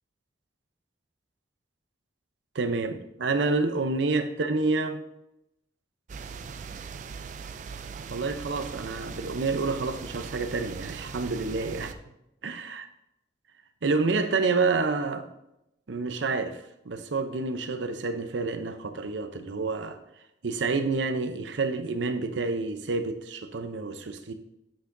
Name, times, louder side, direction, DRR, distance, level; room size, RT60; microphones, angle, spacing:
voice 1, 2.5-5.0 8.1-12.0 12.4-12.9 13.8-15.2 15.9-20.0 20.4-24.3, right 3 dB, 85° right, 0.6 m, -28 dB
sound 1, 6.1-11.9, right 5 dB, 40° right, 0.3 m, -40 dB
8.7 x 5.8 x 2.6 m
head